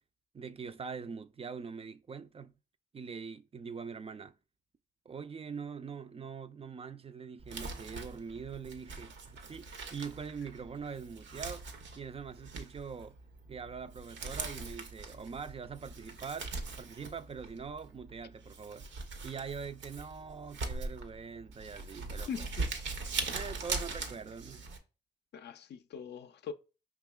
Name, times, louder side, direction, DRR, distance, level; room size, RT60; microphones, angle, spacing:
voice 1, 0.3-2.5 2.9-4.3 5.1-11.7 12.0-13.2 13.5-22.3 23.3-24.7, right 6 dB, 30° right, 0.3 m, -43 dB
Crumpling crinkling, 7.4-24.8, right 4 dB, 80° right, 0.7 m, -41 dB
voice 2, 22.3-22.7 25.3-26.5, left 7 dB, 65° left, 0.4 m, -41 dB
5.0 x 2.9 x 2.2 m
supercardioid pair, 50°, 19 cm